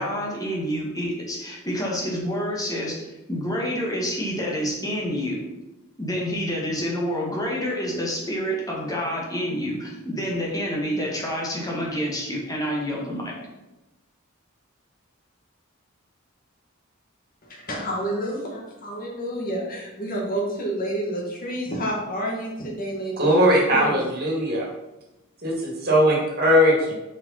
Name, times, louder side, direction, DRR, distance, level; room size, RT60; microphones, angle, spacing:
voice 1, 0.0-5.4 6.0-13.3, equal, 15° left, -3 dB, 1.9 m, -28 dB
voice 2, 17.4-24.0, right 1 dB, 45° left, -1 dB, 2.0 m, -29 dB
voice 3, 23.2-24.7 25.4-26.9, equal, 50° right, -2 dB, 2.3 m, -19 dB
5.6 x 5.2 x 5.7 m, 0.98 s
head